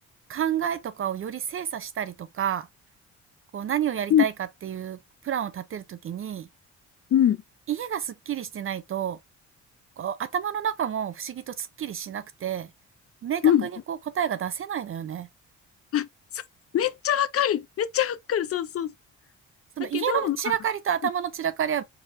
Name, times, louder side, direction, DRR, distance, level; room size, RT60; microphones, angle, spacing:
voice 1, 0.3-2.7 3.5-4.3 4.6-5.0 5.2-6.5 7.7-9.2 10.0-12.7 13.2-15.3 19.8-21.8, right 9 dB, 45° right, 0.5 m, -29 dB
voice 2, 16.7-18.9 19.8-20.4, left 10 dB, 50° left, 0.5 m, -23 dB
4.6 x 3.1 x 2.5 m
cardioid pair, 90°, 30 cm